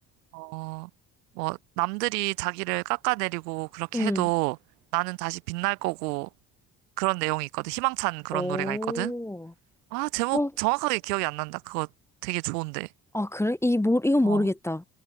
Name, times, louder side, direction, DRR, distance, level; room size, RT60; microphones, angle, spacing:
voice 1, 0.3-0.9 1.4-4.6 4.9-6.3 7.0-9.1 9.9-11.9 12.2-12.9 14.2-14.5, right 26 dB, 75° right, 0.5 m, -29 dB
voice 2, 3.9-4.3 8.3-9.5 10.3-10.5 13.1-14.8, left 1 dB, 5° left, 0.6 m, -26 dB
hypercardioid pair, 50°, 48 cm